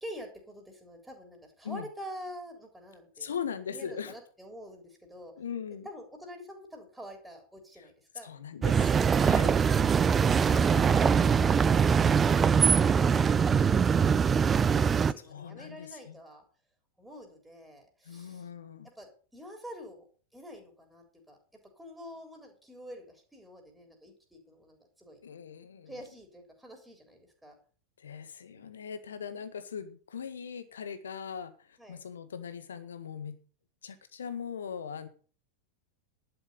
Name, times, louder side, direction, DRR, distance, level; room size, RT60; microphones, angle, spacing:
voice 1, 0.0-3.3 3.7-5.3 5.8-8.3 12.8-16.4 17.0-18.5 19.0-20.1 20.3-21.4 21.8-25.2 25.9-27.6 31.8-32.0, equal, 5° right, 2 dB, 3.7 m, -47 dB
voice 2, 3.2-4.1 5.3-5.9 7.8-7.9 8.2-9.6 15.2-16.2 18.0-18.9 25.2-26.0 28.0-33.4 33.8-35.1, left 7 dB, 65° left, 10 dB, 1.6 m, -40 dB
sound 1, 8.6-15.1, right 6 dB, 20° right, 0.5 m, -23 dB
11.5 x 7.8 x 6.7 m, 0.40 s
figure-of-eight pair, 90°, 0 cm